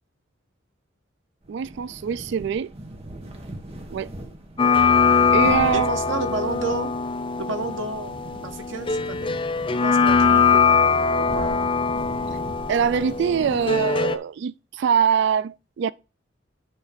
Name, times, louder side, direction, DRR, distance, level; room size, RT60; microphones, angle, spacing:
sound 1, 1.4-14.2, right 1 dB, 30° right, 1.4 m, -40 dB
voice 1, 1.5-2.7 3.9-4.1 5.3-5.9 12.7-15.9, right 7 dB, 65° right, 0.3 m, -23 dB
sound 2, 4.6-14.2, left 5 dB, 25° left, 0.5 m, -21 dB
voice 2, 5.7-6.9 7.4-9.3 9.7-10.8 11.2-11.6, right 3 dB, 90° right, 1.2 m, -31 dB
9.8 x 3.3 x 5.1 m
head